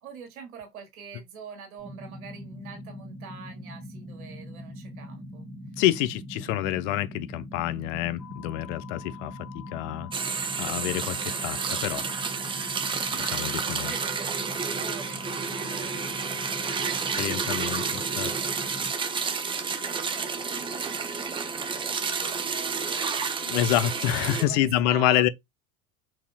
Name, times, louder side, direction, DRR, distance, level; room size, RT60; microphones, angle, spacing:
voice 1, 0.0-5.5 13.1-17.8 18.3-19.2 19.5-25.3, right 6 dB, 80° right, 1.3 m, -46 dB
sound 1, 1.8-18.9, equal, 30° right, 1.4 m, -42 dB
voice 2, 5.8-12.0 13.1-13.9 17.2-18.3 23.4-25.3, left 13 dB, 55° left, 0.5 m, -27 dB
sound 2, 8.2-24.4, left 9 dB, 10° left, 0.9 m, -47 dB
sound 3, 10.1-24.4, right 5 dB, 15° right, 0.4 m, -30 dB
5.5 x 2.6 x 2.2 m
hypercardioid pair, 80°, 42 cm